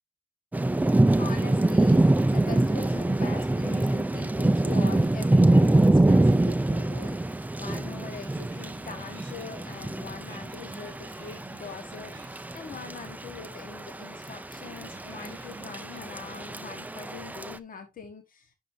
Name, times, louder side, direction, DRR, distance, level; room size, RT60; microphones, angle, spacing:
Thunder / Rain, 0.5-17.6, right 2 dB, 10° right, 0.4 m, -25 dB
voice 1, 1.1-18.5, left 5 dB, 65° left, 1.5 m, -42 dB
sound 1, 8.1-16.6, right 3 dB, 30° right, 3.0 m, -51 dB
10.5 x 5.4 x 2.7 m
wide cardioid pair, 150°, 16 cm